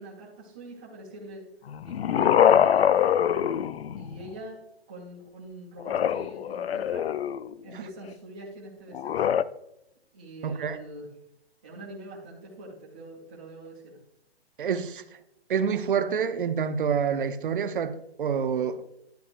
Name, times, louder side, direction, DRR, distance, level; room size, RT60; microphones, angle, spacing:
voice 1, 0.0-1.4 1.8-3.3 3.9-4.6 4.9-7.1 7.6-9.3 10.1-11.1 11.6-14.0, right 1 dB, 10° right, -4 dB, 0.4 m, -44 dB
sound 1, 1.7-4.3 5.8-7.6 8.9-9.4, left 9 dB, 70° left, 0.5 m, -24 dB
voice 2, 10.4-10.8 14.6-15.0 15.5-18.8, right 7 dB, 55° right, 12 dB, 0.7 m, -27 dB
10.5 x 9.0 x 2.5 m, 0.84 s
hypercardioid pair, 155°, 32 cm